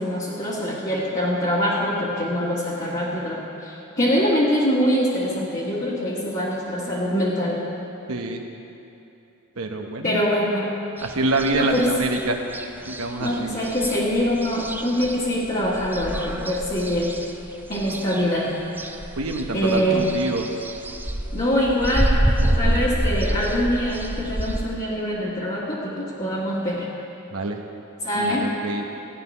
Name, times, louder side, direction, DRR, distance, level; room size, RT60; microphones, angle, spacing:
voice 1, 0.0-7.6 10.0-10.7 11.6-11.9 13.2-17.1 17.7-18.5 19.5-20.0 21.3-22.1 22.4-26.9 28.0-28.5, equal, 35° left, -8 dB, 1.9 m, -24 dB
voice 2, 8.1-8.4 9.6-10.1 11.0-12.4 12.9-13.5 19.2-20.5 22.6-22.8 27.3-27.6 28.2-28.9, right 2 dB, 80° right, 3 dB, 1.0 m, -26 dB
sound 1, 11.0-24.7, right 1 dB, 10° right, 0.5 m, -27 dB
16.0 x 5.8 x 9.8 m, 2.9 s
head